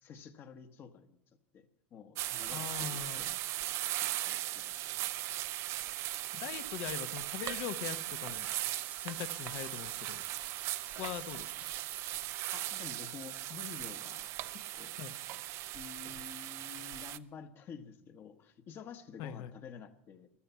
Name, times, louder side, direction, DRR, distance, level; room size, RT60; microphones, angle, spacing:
voice 1, 0.0-1.2 1.5-3.4 4.2-4.7 6.0-6.5 12.5-14.9 15.7-20.3, left 7 dB, 40° left, 8 dB, 1.2 m, -50 dB
sound 1, 2.1-17.2, right 15 dB, 50° right, 0.5 m, -38 dB
voice 2, 2.5-3.3 6.3-8.5 9.0-10.2 11.0-11.5 15.0-15.1 19.2-19.5, left 10 dB, 60° left, 11 dB, 1.0 m, -41 dB
sound 2, 8.3-16.3, right 6 dB, 25° right, 0.9 m, -56 dB
14.5 x 12.5 x 5.7 m, 0.82 s
supercardioid pair, 110°, 6 cm